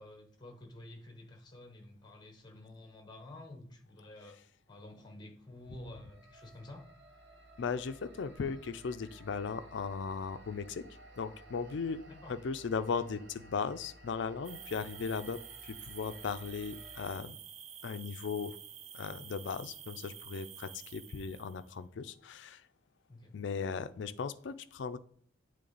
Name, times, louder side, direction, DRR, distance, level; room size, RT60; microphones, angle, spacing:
voice 1, 0.0-4.4 4.7-6.9 12.1-12.3 23.1-23.3, left 1 dB, 20° left, 5 dB, 0.9 m, -50 dB
sound 1, 5.6-17.2, right 1 dB, 60° right, 1.0 m, -56 dB
voice 2, 7.6-10.8 11.2-12.0 12.3-17.4 17.8-18.6 18.9-22.6 23.3-25.0, left 5 dB, 65° left, 13 dB, 0.4 m, -37 dB
sound 2, 14.4-21.7, right 9 dB, 35° right, 0.3 m, -49 dB
8.4 x 3.2 x 3.9 m, 0.63 s
head